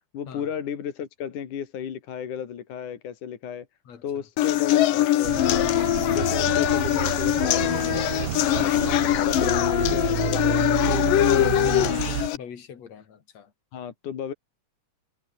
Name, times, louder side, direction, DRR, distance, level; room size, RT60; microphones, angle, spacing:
voice 1, 0.1-3.7 4.0-5.7 6.1-12.1 13.7-14.3, left 8 dB, 70° left, 3.7 m, -34 dB
sound 1, 4.4-12.4, left 14 dB, 90° left, 2.8 m, -22 dB
sound 2, 5.2-12.3, right 13 dB, 75° right, 1.3 m, -30 dB
voice 2, 12.3-13.5, left 7 dB, 55° left, 4.0 m, -44 dB
omnidirectional pair, 3.8 m